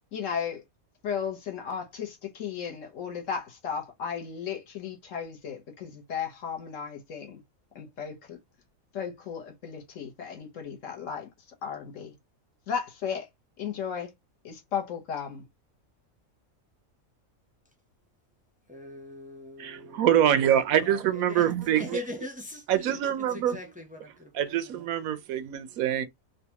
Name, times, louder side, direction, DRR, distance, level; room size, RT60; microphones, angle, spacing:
voice 1, 0.1-0.6 1.0-7.4 7.7-8.4 8.9-11.3 11.6-12.1 12.7-13.3 13.6-14.1 14.4-15.4, left 7 dB, 65° left, 1.3 m, -35 dB
voice 2, 18.7-20.2 20.7-21.5 21.8-24.9, left 2 dB, 10° right, 0.4 m, -41 dB
voice 3, 19.6-22.0 22.7-23.6 24.3-26.1, right 10 dB, 90° right, 1.1 m, -25 dB
4.0 x 2.3 x 2.8 m
omnidirectional pair, 1.4 m